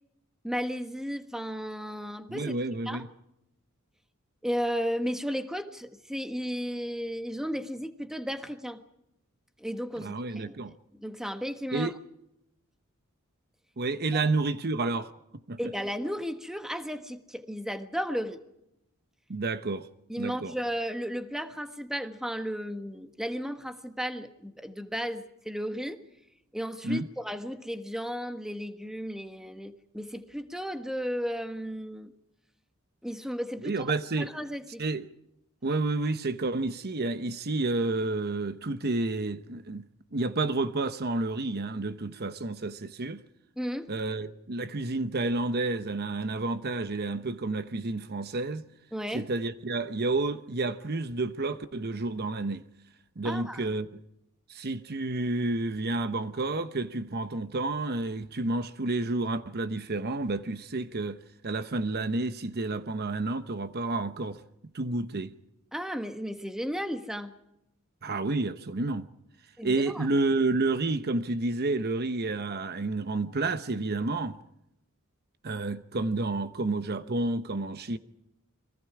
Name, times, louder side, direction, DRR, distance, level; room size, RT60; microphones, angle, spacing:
voice 1, 0.4-2.5 2.8-3.1 4.4-8.8 9.6-10.7 11.0-11.9 14.1-14.2 15.6-18.4 20.1-26.0 26.5-32.1 33.0-33.7 34.2-34.8 43.6-43.9 48.9-49.3 53.2-53.7 65.7-67.3 69.6-70.1, equal, ahead, 1.4 m, -34 dB
voice 2, 2.3-3.1 10.0-10.8 11.7-12.0 13.8-15.1 15.5-15.7 19.3-19.9 20.2-20.5 26.8-27.1 33.6-34.3 34.8-35.1 35.6-43.2 43.9-48.6 49.1-52.6 53.2-53.9 54.5-64.4 64.7-65.3 68.0-69.1 69.6-74.4 75.4-78.0, right 2 dB, 45° right, 0.9 m, -30 dB
30.0 x 23.5 x 4.9 m
head